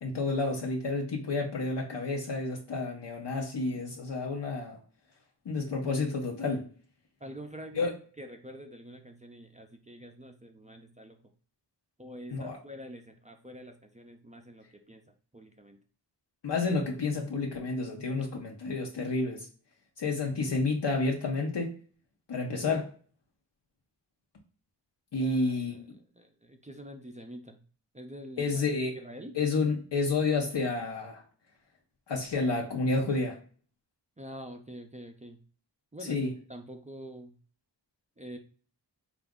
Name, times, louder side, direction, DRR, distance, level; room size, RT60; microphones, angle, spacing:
voice 1, 0.0-4.8 5.5-6.7 7.7-7.9 12.3-12.6 16.4-19.5 20.0-21.7 22.3-22.9 25.1-25.9 28.4-29.0 29.3-31.2 32.1-33.4 36.0-36.3, left 3 dB, 75° left, 0 dB, 0.8 m, -30 dB
voice 2, 7.2-11.2 12.0-15.0 15.3-15.8 25.2-25.9 26.2-27.6 27.9-28.5 29.0-29.4 34.2-35.4 35.9-36.2 36.5-37.4 38.2-38.4, equal, 20° right, 3 dB, 0.4 m, -46 dB
3.9 x 2.5 x 3.5 m, 0.42 s
wide cardioid pair, 95°, 42 cm